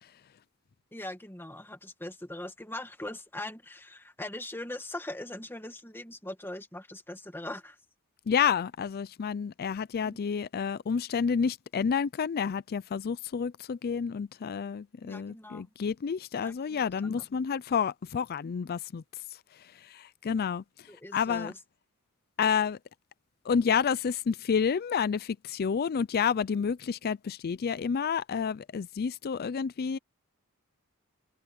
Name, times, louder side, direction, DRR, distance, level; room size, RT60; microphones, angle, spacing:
voice 1, 0.9-7.8 10.0-10.2 15.0-15.7 16.4-17.2 20.9-21.6, left 1 dB, 10° left, 2.0 m, -41 dB
voice 2, 8.3-19.0 19.9-20.6 21.1-21.5 22.4-22.8 23.5-30.0, left 6 dB, 45° left, 0.4 m, -29 dB
head